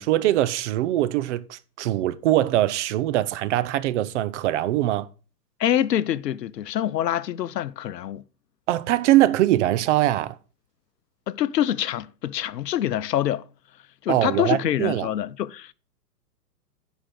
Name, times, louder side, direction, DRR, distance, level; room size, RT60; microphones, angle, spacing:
voice 1, 0.0-5.1 8.7-10.4 14.1-15.1, right 14 dB, 45° right, 0.8 m, -22 dB
voice 2, 5.6-8.2 11.3-13.5 14.0-15.7, left 11 dB, 80° left, 0.7 m, -25 dB
10.0 x 5.2 x 6.0 m
hypercardioid pair, 125°, 48 cm